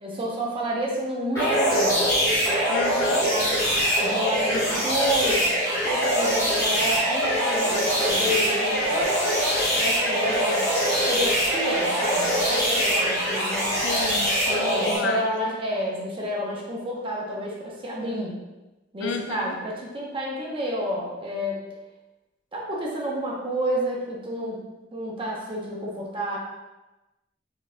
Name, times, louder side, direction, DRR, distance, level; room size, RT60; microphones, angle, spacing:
voice 1, 0.0-2.0 3.3-3.6 4.0-5.5 5.8-9.1 9.8-10.7 11.0-13.8 14.7-18.3 18.9-21.6 22.5-24.6 24.9-26.4, equal, 30° right, -3 dB, 0.8 m, -30 dB
sound 1, 1.3-15.0, equal, 20° left, 1.4 m, -23 dB
voice 2, 2.7-3.3 4.5-4.8 13.8-15.2 19.0-19.5, left 5 dB, 75° left, 5 dB, 0.4 m, -32 dB
3.9 x 3.6 x 2.2 m, 1.1 s
head